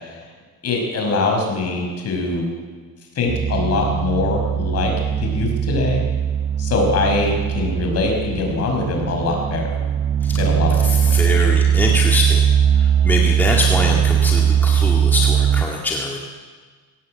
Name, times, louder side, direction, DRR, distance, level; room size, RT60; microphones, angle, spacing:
voice 1, 0.6-2.5 3.2-4.9 5.2-6.0 6.6-9.7 10.3-11.5, left 3 dB, 45° left, 2 dB, 5.4 m, -22 dB
sound 1, 3.3-15.6, right 9 dB, 35° right, 0.8 m, -19 dB
voice 2, 10.8-12.4 12.8-16.2, left 2 dB, 5° left, -2 dB, 1.9 m, -23 dB
20.5 x 17.5 x 8.6 m, 1.5 s
cardioid pair, 160°, 37 cm